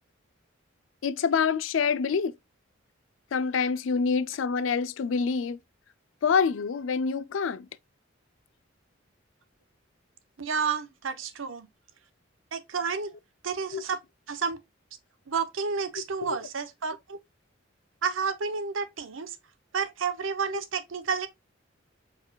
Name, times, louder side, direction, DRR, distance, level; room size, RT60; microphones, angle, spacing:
voice 1, 1.0-2.3 3.3-5.6 6.2-7.7 13.7-13.8 16.3-16.4 20.5-20.6, left 5 dB, 80° left, 0.4 m, -26 dB
voice 2, 10.4-11.7 12.5-13.1 13.4-14.0 14.3-14.6 15.3-17.2 18.0-19.4 19.7-21.3, right 5 dB, 85° right, 0.8 m, -30 dB
4.7 x 4.5 x 2.2 m
head